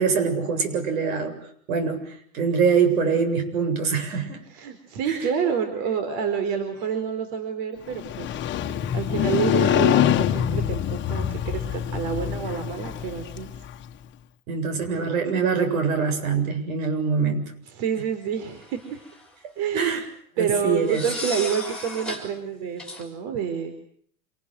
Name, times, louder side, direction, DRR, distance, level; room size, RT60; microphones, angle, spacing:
voice 1, 0.0-1.4 1.7-4.4 5.1-5.2 9.4-9.5 14.5-17.5 19.7-20.0 20.4-21.0, right 5 dB, 75° right, 8 dB, 7.8 m, -24 dB
voice 2, 4.5-8.4 8.9-13.5 17.7-19.0 19.6-20.0 20.4-23.7, right 7 dB, 50° right, 8 dB, 4.6 m, -28 dB
Motorcycle, 7.9-13.8, left 11 dB, 25° left, 1.7 m, -25 dB
sound 1, 18.6-19.3 20.8-22.3 22.8-23.0, left 2 dB, ahead, 6.0 m, -34 dB
27.5 x 20.0 x 9.4 m, 0.63 s
supercardioid pair, 145°, 41 cm